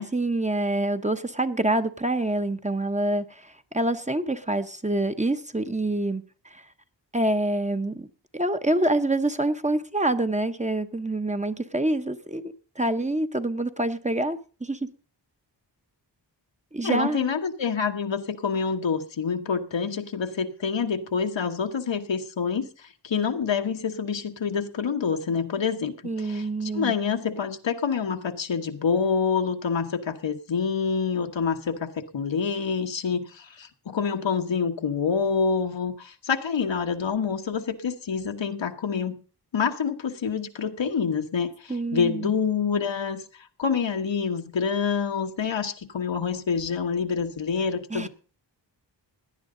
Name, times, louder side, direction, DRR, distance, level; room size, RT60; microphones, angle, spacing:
voice 1, 0.1-6.2 6.5-6.6 7.1-8.1 8.3-14.9 16.7-17.3 26.0-26.9 41.7-42.3 47.9-48.1, right 1 dB, 15° right, 0.9 m, -26 dB
voice 2, 16.8-39.2 39.5-43.2 43.6-48.1, left 6 dB, 80° left, 1.3 m, -27 dB
17.5 x 10.5 x 3.8 m
wide cardioid pair, 95°, 44 cm